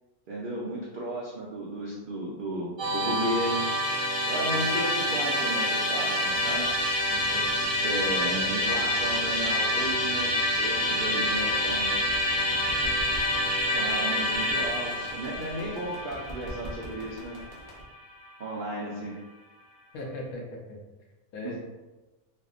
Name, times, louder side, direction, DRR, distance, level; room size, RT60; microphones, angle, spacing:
voice 1, 0.3-3.7 4.3-6.7 7.8-11.9 13.7-17.4 18.4-19.2 21.4-21.6, right 1 dB, 85° right, -4 dB, 0.4 m, -34 dB
Musical instrument, 2.8-18.0, left 1 dB, 65° right, 1.1 m, -27 dB
sound 1, 6.2-12.8, equal, 25° left, 0.8 m, -47 dB
voice 2, 7.1-7.7 19.9-20.8 21.3-21.6, left 1 dB, 75° left, -1 dB, 1.2 m, -39 dB
sound 2, 11.3-17.8, equal, 25° right, 0.6 m, -44 dB
3.3 x 2.0 x 3.6 m, 1.2 s
omnidirectional pair, 1.6 m